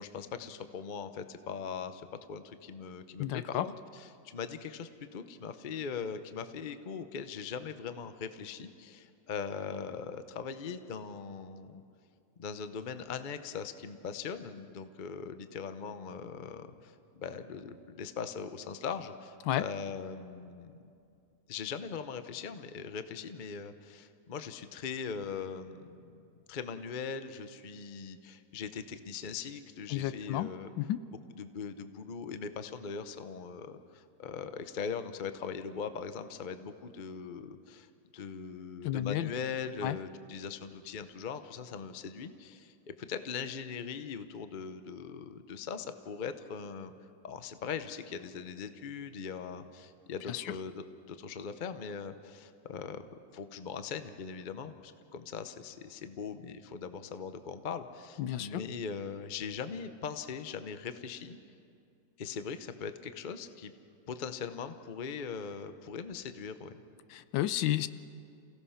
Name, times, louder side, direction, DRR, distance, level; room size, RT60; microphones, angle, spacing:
voice 1, 0.0-11.8 12.4-20.9 21.5-30.7 31.4-46.9 47.2-53.0 53.3-61.4 62.2-63.7 64.1-66.8, left 6 dB, 50° left, 10 dB, 0.5 m, -40 dB
voice 2, 3.2-3.7 19.5-19.6 29.9-30.5 30.8-31.0 38.8-39.3 39.8-40.0 50.3-50.4 58.2-58.6 67.1-67.9, left 13 dB, 80° left, 14 dB, 1.3 m, -31 dB
29.0 x 17.0 x 5.7 m, 2.5 s
omnidirectional pair, 2.1 m